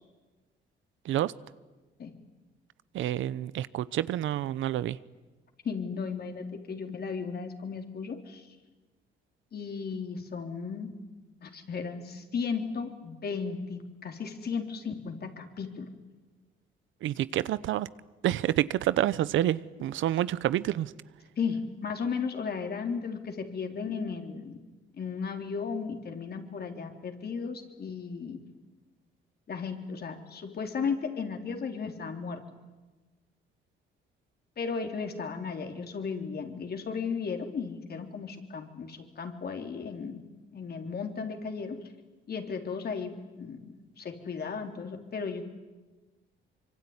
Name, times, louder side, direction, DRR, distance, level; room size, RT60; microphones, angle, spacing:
voice 1, 2.9-5.0 17.0-17.9 18.2-20.9, right 12 dB, 80° right, 18 dB, 0.8 m, -28 dB
voice 2, 5.6-8.5 9.5-10.9 11.4-15.9 21.4-24.6 25.0-28.4 29.5-32.4 34.6-40.2 40.5-41.8 42.3-45.4, left 5 dB, 50° left, 5 dB, 3.7 m, -35 dB
25.0 x 24.0 x 9.8 m, 1.2 s
cardioid pair, 90°, 20 cm